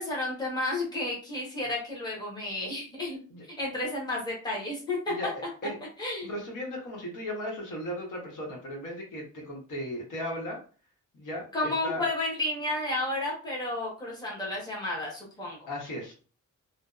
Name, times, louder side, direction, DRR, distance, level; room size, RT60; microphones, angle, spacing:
voice 1, 0.0-3.2 3.6-5.1 6.0-6.3 11.5-15.6, left 2 dB, 15° left, -4 dB, 0.8 m, -32 dB
voice 2, 6.2-10.6 11.1-12.1 15.7-16.1, equal, 80° left, -1 dB, 1.0 m, -36 dB
2.6 x 2.1 x 2.3 m, 0.38 s
wide cardioid pair, 165°, 31 cm